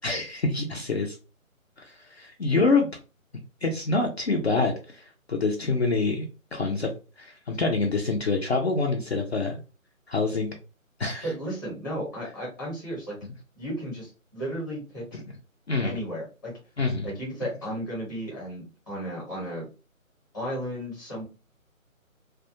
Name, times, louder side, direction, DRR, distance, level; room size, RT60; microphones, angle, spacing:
voice 1, 0.0-1.2 1.8-2.9 3.6-6.3 6.5-6.9 7.2-9.6 10.1-10.5 11.0-11.3 13.2-13.3 15.1-15.2 15.7-16.0 16.8-17.1, left 3 dB, 50° left, 1 dB, 0.5 m, -26 dB
voice 2, 11.2-13.2 13.6-15.2 15.8-16.5 17.0-19.7 20.3-21.2, equal, 15° left, -5 dB, 0.8 m, -34 dB
2.2 x 2.2 x 2.7 m, 0.32 s
figure-of-eight pair, 155°, 41 cm